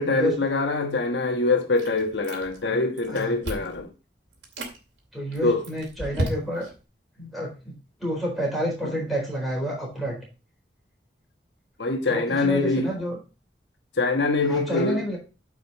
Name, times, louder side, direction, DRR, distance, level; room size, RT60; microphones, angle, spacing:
voice 1, 0.0-3.9 5.4-5.6 11.8-12.9 14.0-15.0, left 3 dB, 75° left, 1.2 m, -24 dB
Chewing mastication, 1.8-2.7 3.0-3.8 4.3-4.8 5.3-6.8, right 1 dB, 80° right, 2.5 m, -33 dB
voice 2, 5.1-6.7 7.2-7.7 8.0-10.2 12.1-13.2 14.4-15.2, equal, ahead, 4.2 m, -29 dB
9.4 x 5.1 x 4.2 m
head